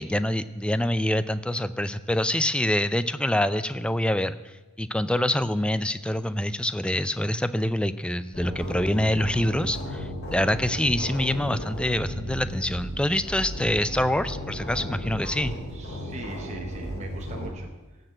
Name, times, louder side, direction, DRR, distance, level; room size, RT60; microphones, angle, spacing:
voice 1, 0.0-15.6, left 1 dB, 5° left, 13 dB, 0.4 m, -26 dB
sound 1, 8.3-17.5, equal, 50° left, 4.5 m, -35 dB
voice 2, 15.7-18.0, right 2 dB, 30° right, 2 dB, 0.9 m, -42 dB
17.5 x 6.7 x 7.6 m, 1.1 s
head